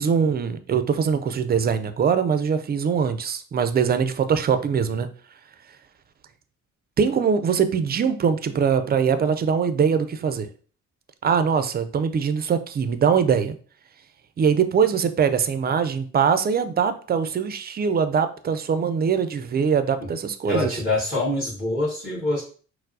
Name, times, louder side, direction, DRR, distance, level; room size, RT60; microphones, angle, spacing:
voice 1, 0.0-5.1 7.0-10.5 11.2-13.6 14.4-20.8, right 6 dB, 35° right, 0.4 m, -22 dB
voice 2, 20.5-22.4, left 2 dB, 35° left, 1.7 m, -25 dB
4.4 x 2.0 x 2.6 m
cardioid pair, 90°, 30 cm